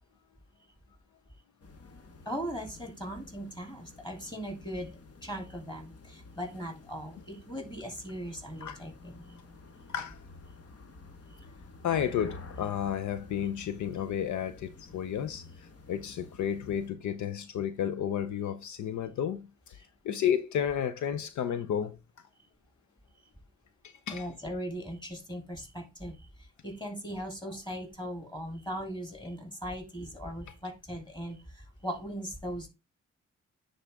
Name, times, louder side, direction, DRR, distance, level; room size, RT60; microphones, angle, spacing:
sound 1, 1.6-16.9, left 3 dB, 55° left, 1.2 m, -51 dB
voice 1, 2.2-9.4 24.1-32.7, equal, 15° left, 3.1 m, -39 dB
voice 2, 11.8-22.0 23.8-24.3, left 9 dB, 75° left, 0.6 m, -32 dB
9.7 x 4.0 x 3.5 m
supercardioid pair, 45°, 30 cm